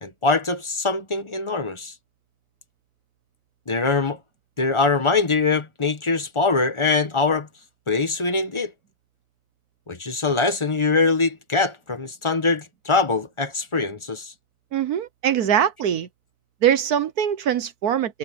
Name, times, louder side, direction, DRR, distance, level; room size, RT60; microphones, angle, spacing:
voice 1, 0.0-1.9 3.7-4.2 4.6-7.5 7.9-8.7 9.9-14.3, left 4 dB, 20° left, 0.9 m, -23 dB
voice 2, 14.7-16.1 16.6-18.2, right 9 dB, 60° right, 1.1 m, -22 dB
omnidirectional pair, 2.4 m